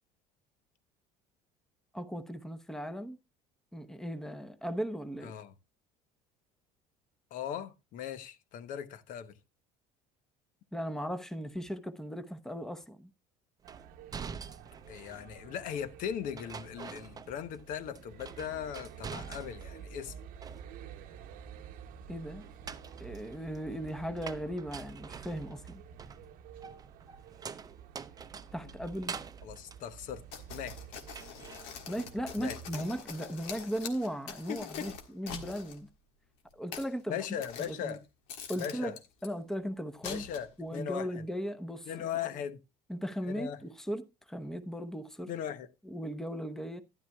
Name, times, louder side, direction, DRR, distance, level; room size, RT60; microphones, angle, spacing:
voice 1, 1.9-3.2 3.7-5.3 10.7-13.1 22.1-22.4 23.0-25.8 28.5-29.2 31.9-35.9 36.5-37.2 37.6-38.0 38.5-38.9 39.2-40.2 40.6-42.3 42.9-45.3 45.8-46.8, equal, 5° left, 0.9 m, -37 dB
voice 2, 5.2-5.5 7.3-9.4 14.9-20.1 29.4-30.8 32.4-32.6 34.5-34.9 37.1-38.0 38.6-38.9 40.0-41.2 41.9-42.6 43.3-43.6 45.3-45.7, left 9 dB, 65° left, 0.9 m, -39 dB
sound 1, 13.6-32.8, right 8 dB, 70° right, 0.9 m, -50 dB
sound 2, 13.7-15.3 16.4-17.7 17.9-19.8 20.2-21.0 22.4-30.7 31.1-31.7, right 6 dB, 25° right, 0.6 m, -46 dB
sound 3, 30.3-35.8 36.5-36.9 37.4-38.0 38.3-39.3 40.0-40.6, left 6 dB, 85° left, 1.6 m, -44 dB
12.5 x 10.5 x 2.3 m
supercardioid pair, 95°, 15 cm